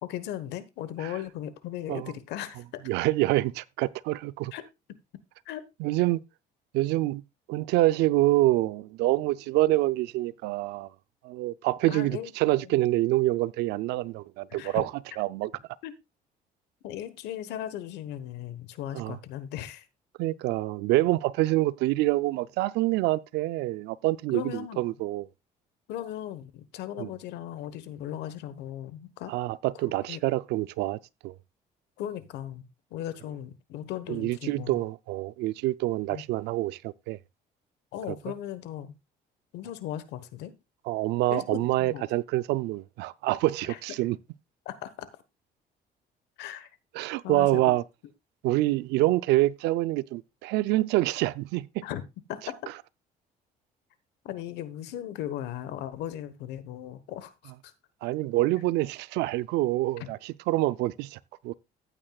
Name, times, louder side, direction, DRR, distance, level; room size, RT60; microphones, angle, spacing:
voice 1, 0.0-2.8 4.5-4.7 5.4-5.6 11.9-12.8 14.5-14.8 15.8-15.9 16.8-19.9 24.3-24.8 25.9-29.3 29.8-30.2 32.0-32.6 32.9-34.8 36.1-36.2 37.9-38.9 39.5-40.5 41.3-42.0 43.6-43.8 44.6-45.1 46.4-46.7 47.2-47.7 51.8-52.0 52.3-52.5 54.2-57.7, left 11 dB, 85° left, 1.2 m, -37 dB
voice 2, 2.9-4.5 5.8-6.2 6.7-7.2 7.5-10.9 11.2-14.9 15.2-15.5 18.9-19.2 20.2-25.3 27.0-27.1 29.3-31.3 34.1-37.2 40.9-44.2 46.9-47.8 48.4-51.8 58.0-61.2 61.4-61.5, right 17 dB, 90° right, 0.5 m, -26 dB
14.5 x 9.0 x 2.3 m
cardioid pair, 110°, 17 cm